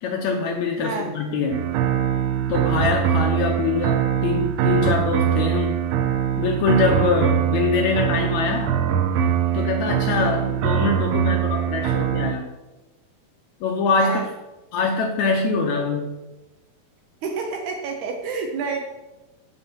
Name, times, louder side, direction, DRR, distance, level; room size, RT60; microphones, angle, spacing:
voice 1, 0.0-1.6 2.5-5.8 6.4-8.8 9.5-12.5 13.6-14.3 14.7-16.1, left 4 dB, 85° left, 2 dB, 1.6 m, -23 dB
sound 1, 1.5-12.3, right 9 dB, 90° right, 2.5 m, -22 dB
voice 2, 17.2-18.8, right 5 dB, 75° right, 3 dB, 1.9 m, -29 dB
7.7 x 7.0 x 4.5 m, 1.1 s
omnidirectional pair, 4.2 m